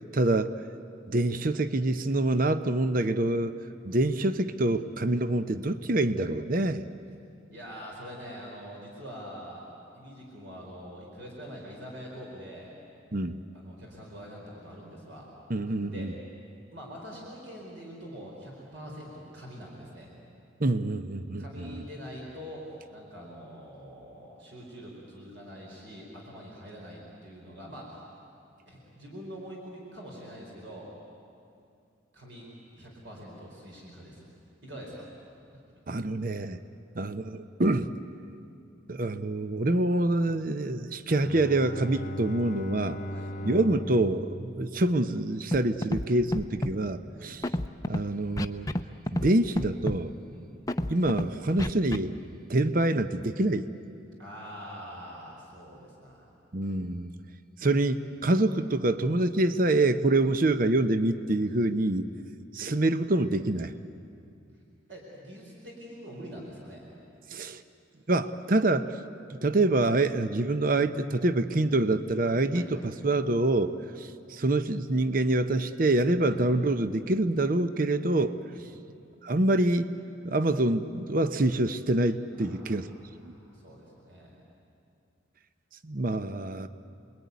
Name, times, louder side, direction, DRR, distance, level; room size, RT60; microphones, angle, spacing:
voice 1, 0.1-0.6 1.1-3.5 3.8-6.8 13.1-13.4 15.5-16.1 20.6-21.8 35.9-36.6 37.0-37.9 38.9-43.0 43.4-47.4 47.9-48.7 49.1-50.1 50.9-52.1 52.5-53.7 56.5-57.1 57.6-62.1 62.5-63.7 67.3-67.6 68.1-68.9 69.3-78.4 79.2-79.9 80.2-82.9 83.2-83.3 85.8-86.7, right 2 dB, 45° right, 11 dB, 0.8 m, -26 dB
voice 2, 7.5-9.6 9.9-12.7 13.5-15.3 15.9-16.1 16.7-20.1 21.4-28.0 28.7-30.9 32.1-32.5 32.7-34.2 34.6-35.1 35.5-35.6 43.1-43.3 47.2-47.3 50.3-50.5 54.2-56.3 61.5-61.6 64.9-66.8 72.5-72.9 76.2-76.4 78.5-78.6 82.4-84.3, equal, 65° right, -2 dB, 4.6 m, -44 dB
Bowed string instrument, 41.1-45.6, equal, 40° left, 0.9 m, -39 dB
Scratching (performance technique), 45.5-45.6 45.8-46.0 46.3-46.7 47.4-48.0 48.4-48.8 49.1-49.3 49.5-50.0 50.7-51.2 51.6-52.0, left 1 dB, 15° left, 0.6 m, -28 dB
29.5 x 21.5 x 9.5 m, 2.5 s
head